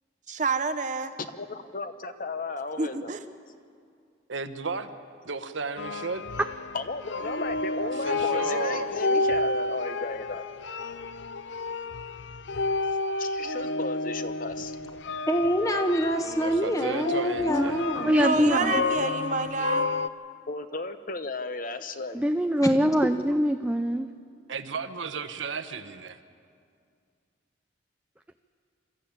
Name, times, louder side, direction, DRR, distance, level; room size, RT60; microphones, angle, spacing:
voice 1, 0.3-1.1 2.8-3.2 18.1-19.9, right 3 dB, 40° right, 10 dB, 0.9 m, -28 dB
voice 2, 1.3-3.1 6.7-10.4 13.2-14.8 18.5-19.2 20.5-22.2, left 3 dB, 45° left, 10 dB, 0.9 m, -35 dB
voice 3, 4.3-5.0 5.2-6.2 7.8-8.9 16.4-18.1 24.5-26.2, right 4 dB, 80° right, 9 dB, 1.1 m, -34 dB
sound 1, 5.8-20.1, left 3 dB, 65° left, 0.6 m, -30 dB
voice 4, 15.3-18.1 22.6-22.7, equal, 15° left, 6 dB, 1.2 m, -26 dB
voice 5, 17.5-18.7 22.1-24.1, equal, 5° right, 7 dB, 0.4 m, -24 dB
26.5 x 13.5 x 8.8 m, 2.3 s
head